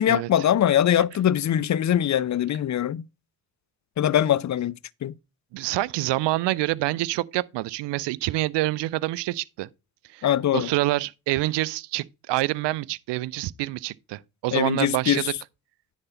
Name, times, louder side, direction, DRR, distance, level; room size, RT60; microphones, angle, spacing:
voice 1, 0.0-3.0 4.0-4.7 5.0-5.1 10.2-10.7 14.5-15.3, left 10 dB, 40° left, 0.6 m, -22 dB
voice 2, 5.5-9.7 10.1-10.3 10.5-15.2, right 18 dB, 65° right, 0.6 m, -27 dB
9.8 x 4.2 x 5.6 m
hypercardioid pair, 40°, 46 cm